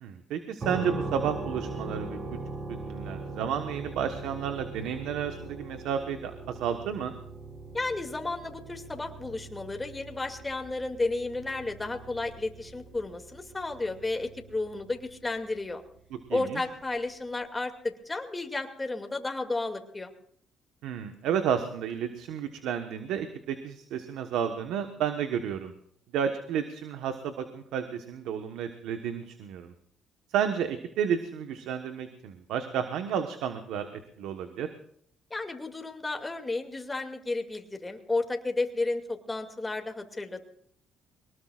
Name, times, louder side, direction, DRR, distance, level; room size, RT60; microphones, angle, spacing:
voice 1, 0.0-2.4 2.9-7.1 16.3-16.6 20.8-25.7 26.1-29.7 30.3-33.9 34.2-34.7, right 8 dB, 85° right, 7 dB, 1.2 m, -31 dB
sound 1, 0.6-15.3, right 2 dB, 45° right, 5.8 m, -40 dB
voice 2, 7.7-15.8 16.3-20.1 35.3-40.4, left 2 dB, 20° left, 4 dB, 2.4 m, -32 dB
22.5 x 19.0 x 2.5 m, 0.66 s
cardioid pair, 80°, 0 cm